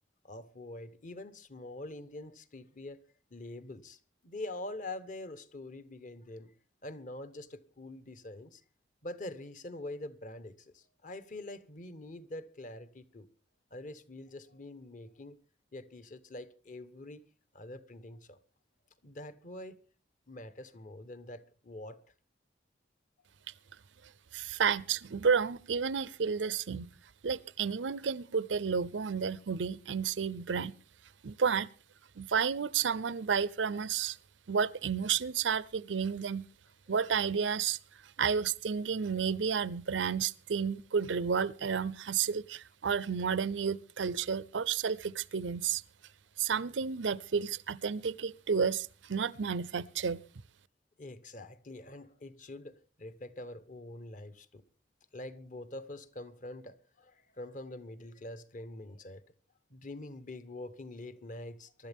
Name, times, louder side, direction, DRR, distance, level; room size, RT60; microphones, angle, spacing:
voice 1, 0.2-3.0 3.3-6.5 6.8-8.6 9.0-13.3 13.7-15.4 15.7-17.2 17.5-18.4 19.0-19.8 20.3-22.0 51.0-54.6 55.1-59.2 59.7-61.9, left 1 dB, 45° left, 1.1 m, -45 dB
voice 2, 24.3-26.9 27.2-30.7 31.2-31.7 32.2-34.2 34.5-36.4 36.9-37.8 38.2-45.8 46.4-50.2, right 6 dB, 90° right, 0.6 m, -31 dB
23.5 x 12.0 x 3.6 m
head